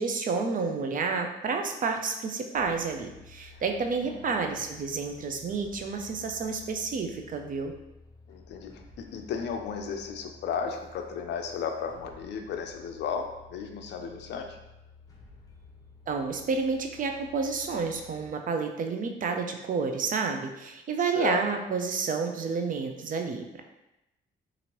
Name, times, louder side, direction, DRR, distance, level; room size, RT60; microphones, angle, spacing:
voice 1, 0.0-7.7 16.1-23.6, right 4 dB, 45° right, 5 dB, 0.4 m, -30 dB
sound 1, 2.5-18.3, left 3 dB, 20° left, 0.7 m, -53 dB
voice 2, 8.3-14.6 21.2-21.4, left 6 dB, 60° left, 4 dB, 0.4 m, -34 dB
2.9 x 2.5 x 2.9 m, 0.94 s
cardioid pair, 90°, 20 cm